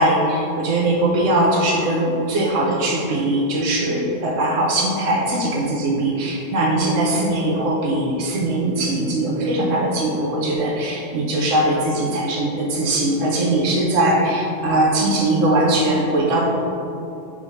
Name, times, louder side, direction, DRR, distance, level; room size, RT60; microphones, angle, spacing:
voice 1, 0.0-16.5, right 1 dB, 80° right, -2 dB, 1.2 m, -20 dB
6.1 x 3.7 x 6.0 m, 2.7 s
omnidirectional pair, 1.3 m